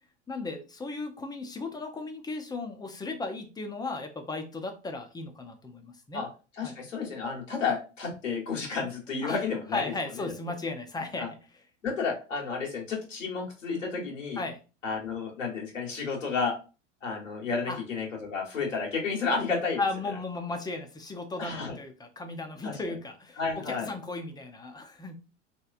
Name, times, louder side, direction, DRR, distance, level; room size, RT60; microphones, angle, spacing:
voice 1, 0.3-6.2 6.6-6.8 9.2-9.4 9.7-11.3 14.4-14.6 17.7-17.8 19.8-25.1, left 3 dB, 10° left, 5 dB, 0.5 m, -36 dB
voice 2, 6.5-10.3 11.2-11.3 11.8-14.4 14.8-16.5 17.0-19.8 21.3-21.8 22.6-22.8 23.4-23.9, left 4 dB, 85° left, -2 dB, 1.3 m, -31 dB
3.1 x 2.9 x 2.4 m, 0.32 s
figure-of-eight pair, 85°, 37 cm